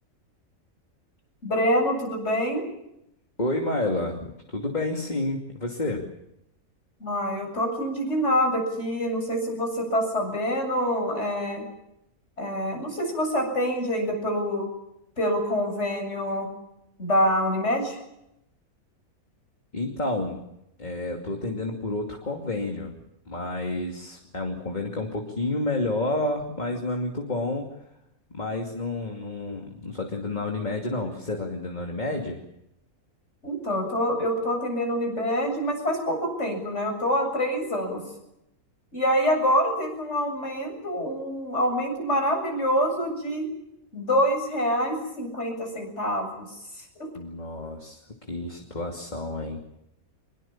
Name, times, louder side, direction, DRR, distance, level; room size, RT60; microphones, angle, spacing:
voice 1, 1.4-2.6 7.0-11.6 12.4-14.7 15.2-16.5 17.0-18.0 33.4-38.0 38.9-43.5 43.9-46.5, equal, 50° left, 3 dB, 8.1 m, -26 dB
voice 2, 3.4-6.1 19.7-20.4 20.8-22.9 23.3-27.7 28.3-32.4 47.1-48.0 48.3-49.6, left 2 dB, 30° left, 1 dB, 2.8 m, -30 dB
25.0 x 22.5 x 7.4 m, 0.82 s
omnidirectional pair, 1.5 m